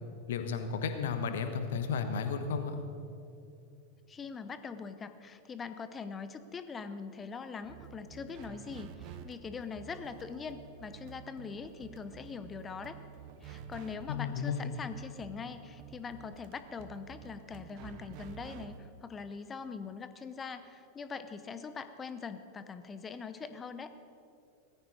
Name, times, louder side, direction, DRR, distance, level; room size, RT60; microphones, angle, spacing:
voice 1, 0.3-2.8 14.1-14.6, left 6 dB, 60° left, 8 dB, 1.2 m, -33 dB
voice 2, 4.1-13.0 13.4-23.9, left 5 dB, 20° left, 11 dB, 0.8 m, -42 dB
sound 1, 7.6-18.9, right 8 dB, 45° right, 0.8 m, -50 dB
17.5 x 14.5 x 4.2 m, 2.6 s
figure-of-eight pair, 90°, 0 cm